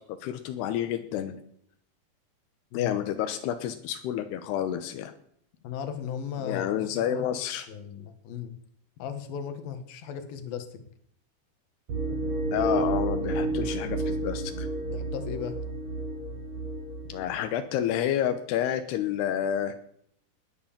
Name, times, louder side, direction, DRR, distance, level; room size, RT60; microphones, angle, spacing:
voice 1, 0.1-1.4 2.7-5.1 6.4-7.7 12.0-12.2 12.5-14.7 17.1-19.7, left 10 dB, 85° left, 9 dB, 3.1 m, -29 dB
voice 2, 5.6-7.3 7.7-8.5 9.0-10.7 14.9-15.6, left 8 dB, 70° left, 9 dB, 3.3 m, -36 dB
sound 1, 11.9-17.2, right 2 dB, 50° right, 5.4 m, -30 dB
19.5 x 9.6 x 7.3 m, 0.68 s
omnidirectional pair, 4.6 m